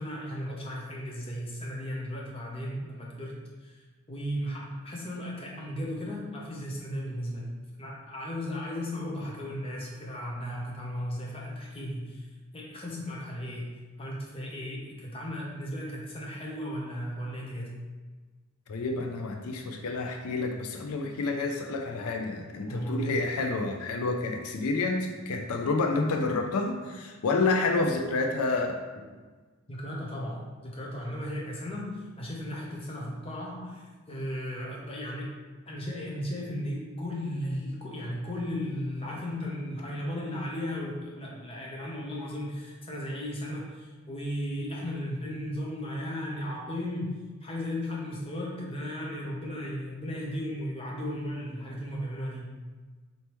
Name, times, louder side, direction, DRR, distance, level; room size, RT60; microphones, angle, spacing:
voice 1, 0.0-3.3 3.6-7.5 7.8-12.3 12.5-13.7 14.0-17.7 22.7-23.1 29.7-35.3 35.7-52.5, equal, 25° left, -3 dB, 0.7 m, -35 dB
voice 2, 18.7-28.8, left 3 dB, 85° left, 3 dB, 0.4 m, -29 dB
4.1 x 3.3 x 3.0 m, 1.3 s
head